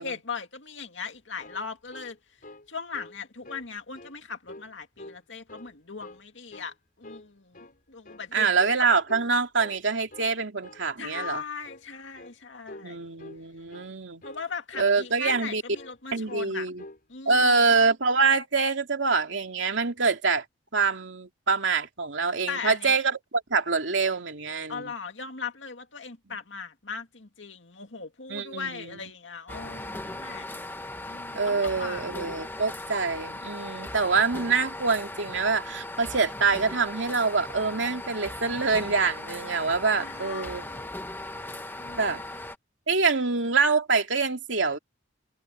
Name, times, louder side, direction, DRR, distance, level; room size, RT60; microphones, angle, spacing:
voice 1, 0.0-2.2 2.7-8.6 11.0-13.1 14.2-16.7 17.1-17.6 22.5-22.9 24.7-30.5 31.0-32.3 40.0-40.9 41.8-42.3, left 5 dB, 75° left, 2.3 m, -39 dB
sound 1, 1.1-2.7 2.9-3.2 3.4-4.1 4.5-5.2 5.5-6.2 6.5-6.7 7.0-7.8 8.0-8.3 8.6-8.8 9.1-9.8 10.1-10.3 10.6-10.9 11.1-11.4 11.6-11.9 12.2-12.4 12.7-12.9 13.2-13.4 13.7-13.9 14.2-14.4 14.7-15.0 15.2-16.0 16.3-16.5 16.8-17.0 17.3-17.5, left 1 dB, 50° left, 6.0 m, -46 dB
voice 2, 8.3-11.4 12.8-14.2 14.8-15.6 16.1-16.8 17.3-20.4 20.7-24.9 28.3-29.0 31.3-40.7 42.0-42.2 42.9-44.8, right 4 dB, 75° right, 2.7 m, -25 dB
sound 2, 29.5-42.6, left 2 dB, 10° left, 1.5 m, -38 dB
head